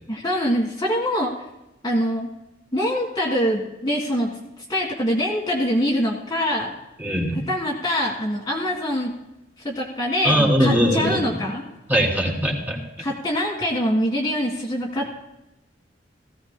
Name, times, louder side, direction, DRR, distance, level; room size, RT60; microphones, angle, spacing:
voice 1, 0.1-1.3 1.8-2.3 2.7-4.4 4.7-6.7 7.3-9.1 9.6-11.6 13.0-15.2, equal, 20° left, -2 dB, 1.7 m, -24 dB
voice 2, 7.0-7.3 10.2-11.2 11.9-12.8, equal, 10° right, -2 dB, 2.9 m, -20 dB
18.5 x 15.5 x 2.2 m, 0.95 s
head